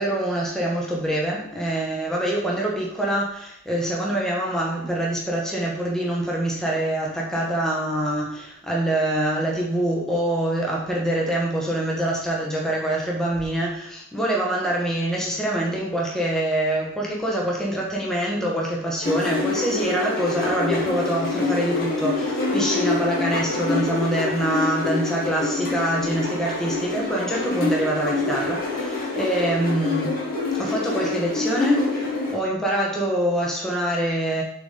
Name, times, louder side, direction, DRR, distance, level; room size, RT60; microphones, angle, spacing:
voice 1, 0.0-30.2 30.5-34.4, right 1 dB, ahead, -3 dB, 1.1 m, -25 dB
sound 1, 19.0-32.3, left 3 dB, 45° left, 1.7 m, -26 dB
7.0 x 4.0 x 3.8 m, 0.73 s
head